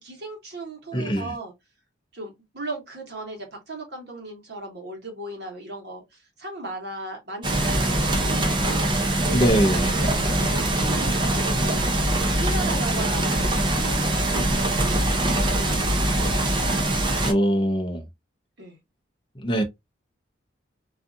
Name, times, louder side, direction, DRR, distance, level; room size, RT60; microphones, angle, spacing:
voice 1, 0.0-1.5 2.1-6.0 6.4-8.9 9.2-9.4 9.8-15.0 15.3-16.5 18.6-18.8, right 2 dB, 55° right, 1.1 m, -37 dB
voice 2, 0.9-1.3 9.3-9.9 17.2-18.0 19.4-19.6, right 1 dB, 25° left, 0.6 m, -22 dB
sound 1, 7.4-17.3, right 1 dB, 25° right, 0.5 m, -23 dB
2.6 x 2.4 x 2.5 m
head